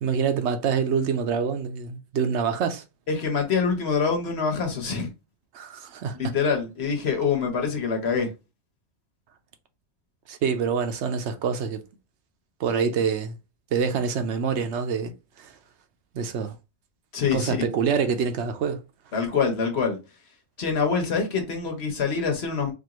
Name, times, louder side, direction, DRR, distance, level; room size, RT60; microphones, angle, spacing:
voice 1, 0.0-2.8 5.5-6.2 10.3-11.8 12.6-13.4 13.7-15.5 16.1-16.6 17.3-18.8, right 6 dB, 75° right, 0.9 m, -26 dB
voice 2, 3.1-5.1 6.1-8.3 17.1-17.7 19.1-20.0 20.6-22.7, left 5 dB, 65° left, 1.2 m, -25 dB
4.4 x 2.5 x 2.9 m
omnidirectional pair, 1.2 m